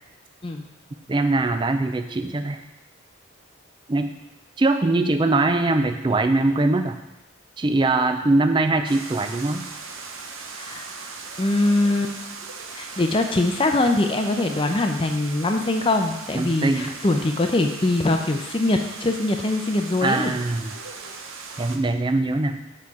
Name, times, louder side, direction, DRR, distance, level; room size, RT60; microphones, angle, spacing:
voice 1, 1.1-2.6 3.9-4.1 4.6-7.0 7.6-9.6 16.3-16.9 20.0-20.7 21.6-22.6, right 2 dB, 25° right, 8 dB, 0.4 m, -22 dB
sound 1, 8.9-21.8, right 4 dB, 80° right, 0.7 m, -38 dB
voice 2, 10.6-11.0 11.4-12.1 12.8-20.4, left 2 dB, 25° left, 5 dB, 0.5 m, -22 dB
7.4 x 4.3 x 4.7 m, 0.96 s
head